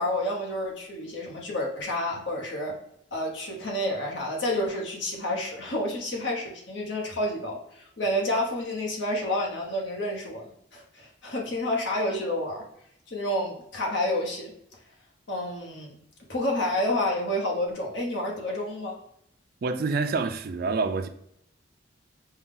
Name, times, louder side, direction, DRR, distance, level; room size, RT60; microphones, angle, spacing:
voice 1, 0.0-2.8 3.1-12.6 13.1-14.5 15.3-15.9 16.3-19.0, left 1 dB, 70° left, 1.1 m, -29 dB
voice 2, 19.6-21.1, right 4 dB, 55° right, 0.4 m, -27 dB
5.5 x 2.3 x 3.6 m
head